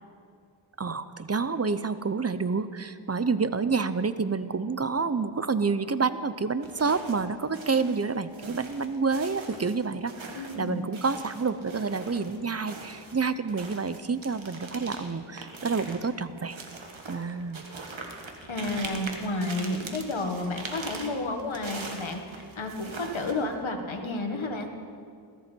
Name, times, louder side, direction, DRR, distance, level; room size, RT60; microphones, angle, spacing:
voice 1, 0.8-16.6 17.1-17.6, right 4 dB, 35° right, 13 dB, 0.7 m, -28 dB
sound 1, 6.6-7.3 7.5-12.4 12.7-23.6, right 3 dB, 80° right, 1.8 m, -42 dB
voice 2, 10.3-10.8 18.5-24.7, left 2 dB, 80° left, 4 dB, 1.9 m, -31 dB
21.5 x 14.5 x 4.6 m, 2.2 s
wide cardioid pair, 55°, 46 cm